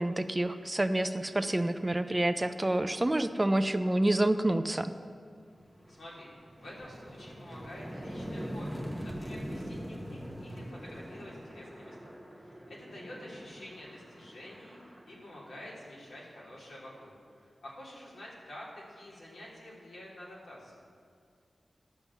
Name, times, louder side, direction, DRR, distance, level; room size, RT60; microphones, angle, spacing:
voice 1, 0.0-4.9, right 1 dB, 20° right, 10 dB, 0.4 m, -28 dB
sound 1, 5.4-16.2, equal, ahead, 1.0 m, -43 dB
voice 2, 5.9-6.3 6.6-20.9, left 1 dB, 85° left, -6 dB, 3.2 m, -48 dB
11.5 x 7.1 x 7.0 m, 2.1 s
wide cardioid pair, 105°, 0 cm